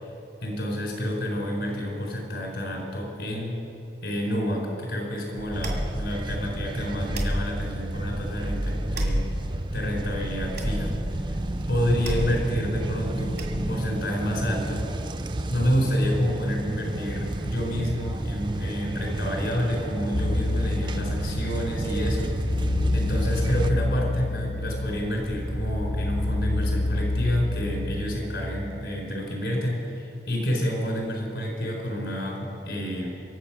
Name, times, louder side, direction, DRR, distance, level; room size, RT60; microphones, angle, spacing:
voice 1, 0.4-3.6 4.0-9.3 9.7-11.4 11.7-14.9 15.5-33.1, equal, 80° left, 0 dB, 4.0 m, -29 dB
sound 1, 5.4-14.0, equal, 85° right, 2.1 m, -32 dB
sound 2, 5.5-23.7, right 1 dB, 25° right, 0.5 m, -32 dB
sound 3, 20.1-28.2, left 2 dB, 45° left, 0.7 m, -28 dB
23.5 x 7.9 x 5.9 m, 2.9 s
head